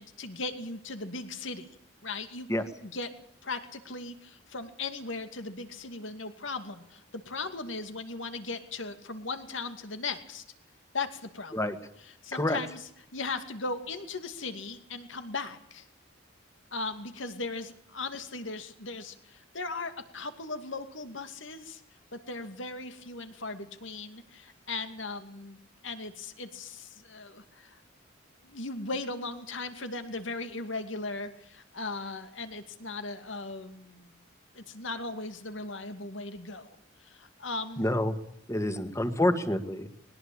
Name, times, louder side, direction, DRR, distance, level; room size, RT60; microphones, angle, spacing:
voice 1, 0.0-1.7 2.0-3.1 3.4-10.4 10.9-11.6 12.0-15.9 16.7-21.8 22.1-25.6 25.8-27.8 28.4-34.1 34.5-36.8 37.0-37.9, left 3 dB, 75° left, 8 dB, 2.5 m, -38 dB
voice 2, 37.8-38.2 38.5-39.9, left 1 dB, 15° left, 9 dB, 2.0 m, -27 dB
21.5 x 20.0 x 8.7 m, 0.69 s
head